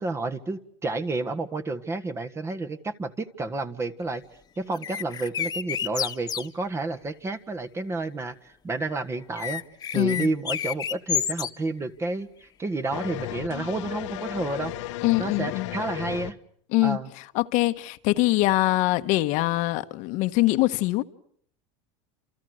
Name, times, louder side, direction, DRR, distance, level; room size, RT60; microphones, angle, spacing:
voice 1, 0.0-4.2 4.6-9.6 9.9-12.3 12.6-14.7 15.2-16.4 16.8-17.1, right 3 dB, 15° right, 1.6 m, -30 dB
sound 1, 4.7-6.5 9.4-11.5, left 9 dB, 25° left, 1.5 m, -29 dB
voice 2, 9.9-10.3 15.0-15.7 16.7-17.0 17.3-21.0, left 19 dB, 55° left, 1.3 m, -23 dB
sound 2, 12.9-16.3, left 16 dB, 80° left, 1.3 m, -34 dB
29.5 x 28.0 x 6.5 m
supercardioid pair, 135°, 15 cm